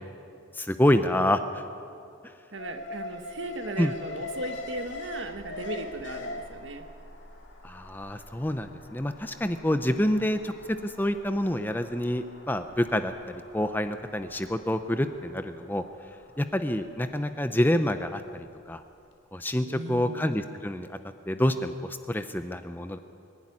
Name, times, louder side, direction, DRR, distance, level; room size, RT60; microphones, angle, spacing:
voice 1, 0.6-1.6 3.8-3.9 7.6-10.5 10.8-15.8 16.4-18.8 19.3-21.0 21.3-23.0, left 1 dB, 10° left, 9 dB, 0.6 m, -27 dB
voice 2, 2.5-6.9 19.7-20.3, right 2 dB, 65° right, 7 dB, 1.4 m, -37 dB
Alarm, 2.6-18.7 19.0-19.1, left 2 dB, 55° left, 2.4 m, -43 dB
23.0 x 12.0 x 9.8 m, 2.5 s
head